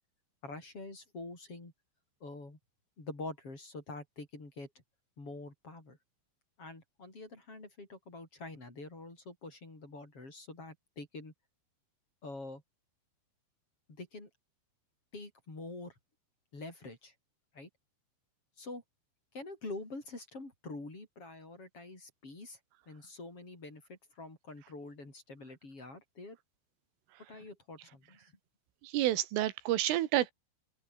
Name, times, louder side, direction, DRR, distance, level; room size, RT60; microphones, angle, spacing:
voice 1, 0.4-1.7 2.2-2.6 3.0-4.7 5.2-6.0 6.6-11.3 12.2-12.6 13.9-14.3 15.1-15.9 16.5-17.1 17.5-17.7 18.6-18.8 19.3-22.6 22.9-26.4 27.3-28.3, left 2 dB, 30° left, 7.5 m, -46 dB
voice 2, 28.8-30.3, right 14 dB, 90° right, 4.2 m, -29 dB
open air
omnidirectional pair, 5.6 m